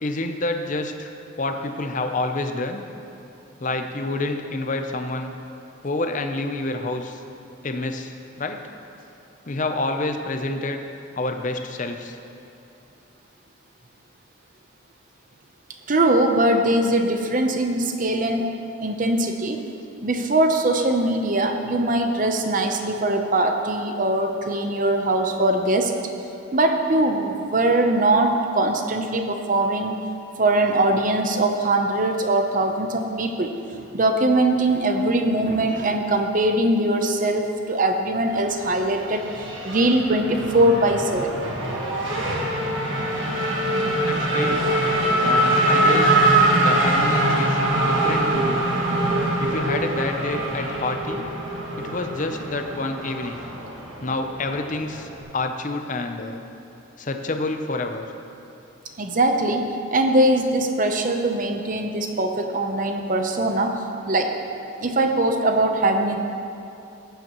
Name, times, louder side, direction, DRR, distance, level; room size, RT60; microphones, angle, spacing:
voice 1, 0.0-2.8 3.6-5.3 5.8-7.2 7.6-8.6 9.5-10.8 11.2-12.2 44.0-44.6 45.2-46.2 46.6-48.6 49.4-51.3 51.8-53.4 54.0-56.4 57.0-58.1, left 2 dB, 40° left, 5 dB, 0.6 m, -28 dB
voice 2, 15.9-18.5 18.8-19.6 20.0-25.9 26.5-30.0 30.4-39.2 39.6-41.4 59.0-63.8 64.1-64.3 64.8-66.2, right 1 dB, 40° right, 5 dB, 0.7 m, -21 dB
Race car auto racing / Accelerating revving vroom, 38.2-55.2, right 1 dB, 70° right, 1.6 m, -23 dB
15.0 x 9.1 x 3.0 m, 2.7 s
head